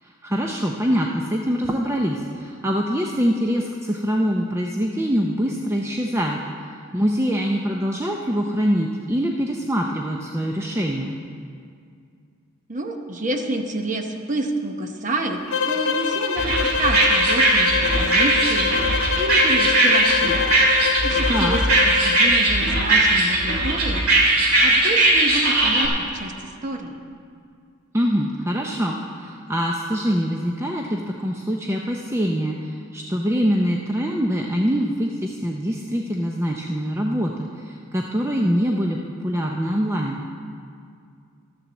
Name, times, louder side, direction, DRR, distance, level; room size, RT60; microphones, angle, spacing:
voice 1, 0.0-11.2 21.3-21.6 27.9-40.2, equal, 10° right, 0 dB, 0.5 m, -24 dB
voice 2, 12.7-17.7 18.0-20.4 21.0-24.1 24.6-27.0, right 2 dB, 35° right, 4 dB, 0.8 m, -28 dB
sound 1, 15.5-22.3, left 6 dB, 55° left, 0.5 m, -25 dB
sound 2, 16.4-25.9, right 2 dB, 85° right, 2.0 m, -19 dB
12.5 x 7.2 x 7.1 m, 2.3 s
head